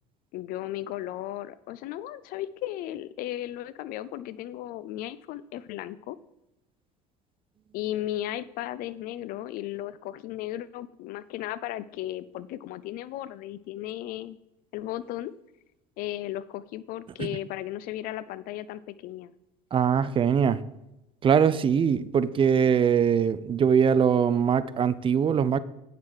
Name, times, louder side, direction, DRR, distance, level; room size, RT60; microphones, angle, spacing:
voice 1, 0.3-6.2 7.7-14.4 14.7-15.3 16.0-19.3, left 13 dB, 65° left, 17 dB, 0.5 m, -35 dB
voice 2, 19.7-20.6 21.2-25.6, right 7 dB, 35° right, 15 dB, 0.5 m, -22 dB
9.0 x 6.6 x 4.8 m, 0.91 s
supercardioid pair, 100°, 16 cm